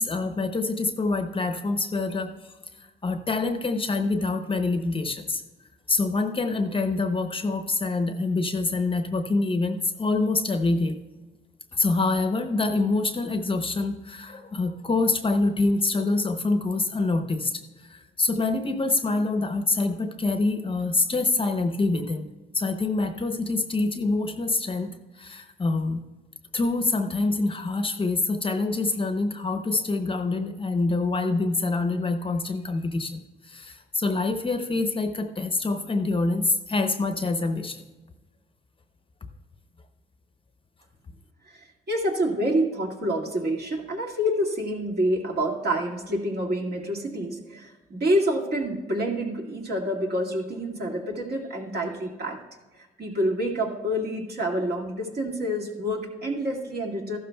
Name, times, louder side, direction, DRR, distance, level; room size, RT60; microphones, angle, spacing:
voice 1, 0.0-2.3 2.8-5.4 5.9-11.0 11.7-17.6 17.9-22.3 22.5-26.0 26.5-37.8, left 3 dB, 25° left, 7 dB, 0.8 m, -26 dB
voice 2, 41.4-52.4 52.8-57.2, equal, 55° right, 0 dB, 2.0 m, -27 dB
14.5 x 12.0 x 2.3 m, 1.2 s
cardioid pair, 90°, 20 cm